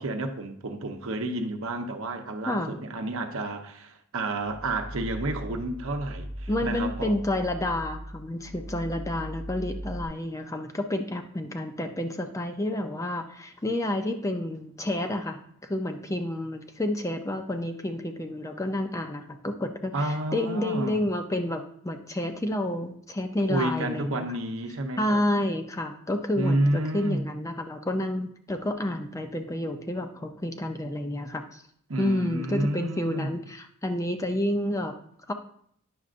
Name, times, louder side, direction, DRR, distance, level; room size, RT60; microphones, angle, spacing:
voice 1, 0.0-7.2 19.9-21.0 23.5-25.2 26.4-27.2 31.9-33.3, right 2 dB, 70° right, 5 dB, 0.8 m, -30 dB
voice 2, 2.5-2.8 6.5-24.3 25.0-31.6 32.0-35.0 35.3-35.4, left 1 dB, 15° left, 6 dB, 0.5 m, -30 dB
sound 1, 4.4-10.0, equal, 25° right, 0.9 m, -38 dB
9.4 x 6.3 x 2.5 m, 0.66 s
head